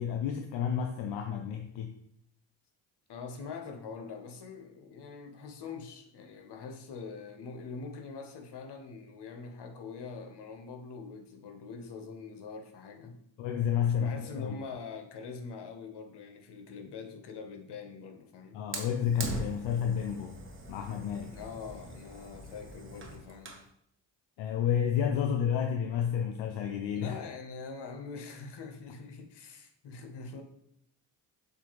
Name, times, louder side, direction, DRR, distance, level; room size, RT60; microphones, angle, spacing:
voice 1, 0.0-1.9 13.4-14.5 18.5-20.4 20.7-21.4 24.4-27.1, left 8 dB, 80° left, 5 dB, 0.6 m, -30 dB
voice 2, 3.1-13.2 13.9-18.6 21.3-23.6 26.9-30.4, left 5 dB, 60° left, 5 dB, 0.9 m, -44 dB
Fire, 18.7-23.7, right 2 dB, 25° right, 1.1 m, -42 dB
6.7 x 2.6 x 3.0 m, 0.74 s
supercardioid pair, 60°, 45 cm